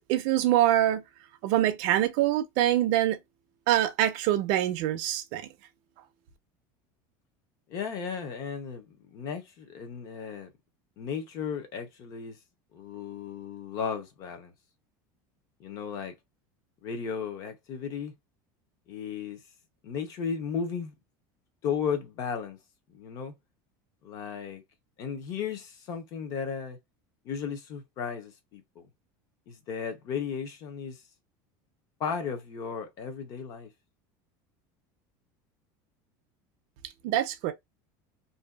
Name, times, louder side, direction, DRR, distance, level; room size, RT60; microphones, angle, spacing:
voice 1, 0.1-1.0 1.4-3.2 3.7-5.4 37.0-37.5, right 13 dB, 50° right, 0.4 m, -24 dB
voice 2, 7.7-10.5 11.0-12.4 12.7-14.5 15.6-16.1 16.8-18.1 18.9-19.4 19.8-20.9 21.6-22.6 22.9-23.3 24.0-24.6 25.0-26.8 27.2-28.9 29.5-31.0 32.0-33.7, left 6 dB, 35° left, 0.6 m, -35 dB
2.6 x 2.2 x 2.2 m
cardioid pair, 175°, 10 cm